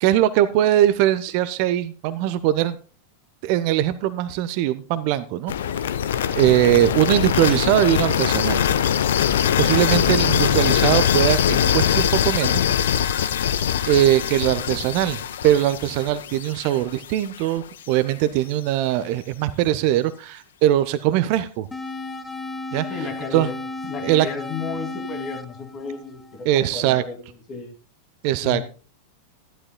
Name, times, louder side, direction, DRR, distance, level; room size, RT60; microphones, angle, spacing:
voice 1, 0.0-2.8 3.4-5.5 6.4-8.6 9.6-12.6 13.9-21.7 22.7-22.9 23.3-23.5 24.0-24.3 26.5-27.0 28.2-28.7, right 13 dB, 45° right, 14 dB, 0.6 m, -21 dB
sound 1, 5.5-17.4, left 9 dB, 60° left, 0.7 m, -22 dB
sound 2, 21.7-26.7, left 3 dB, 10° left, 0.8 m, -34 dB
voice 2, 22.9-23.6 23.9-27.2 27.5-27.7 28.4-28.7, left 4 dB, 30° left, 4 dB, 2.5 m, -33 dB
13.5 x 11.5 x 2.2 m, 0.36 s
figure-of-eight pair, 90°, 0 cm